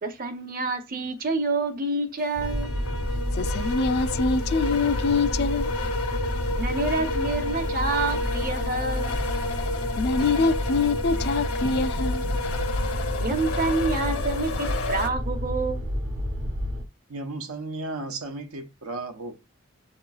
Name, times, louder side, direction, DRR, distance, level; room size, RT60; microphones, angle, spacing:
voice 1, 0.0-2.7 6.6-9.2 13.2-15.9, right 3 dB, 40° right, 0.7 m, -28 dB
sound 1, 2.4-15.1, left 3 dB, 80° left, 0.8 m, -31 dB
sound 2, 2.4-16.9, equal, 65° right, 1.0 m, -30 dB
voice 2, 3.3-5.7 10.0-12.4, left 4 dB, 50° left, 0.3 m, -25 dB
voice 3, 17.1-19.4, right 2 dB, 85° right, 0.7 m, -34 dB
7.8 x 3.0 x 2.3 m
head